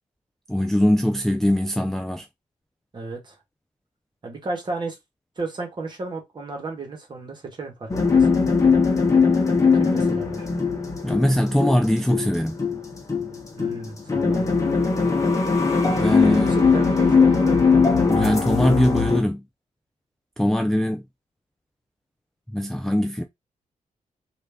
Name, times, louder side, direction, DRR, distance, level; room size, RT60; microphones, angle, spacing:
voice 1, 0.5-2.3 11.0-12.6 15.9-16.6 18.1-19.4 20.4-21.0 22.5-23.2, equal, 5° left, 0.3 m, -21 dB
voice 2, 2.9-3.3 4.2-5.0 5.4-8.3 9.7-10.5 13.6-14.4 16.4-17.6, right 3 dB, 35° right, 1.5 m, -33 dB
sound 1, 7.9-19.2, left 5 dB, 25° left, 1.0 m, -20 dB
3.2 x 2.6 x 3.4 m
wide cardioid pair, 125°, 13 cm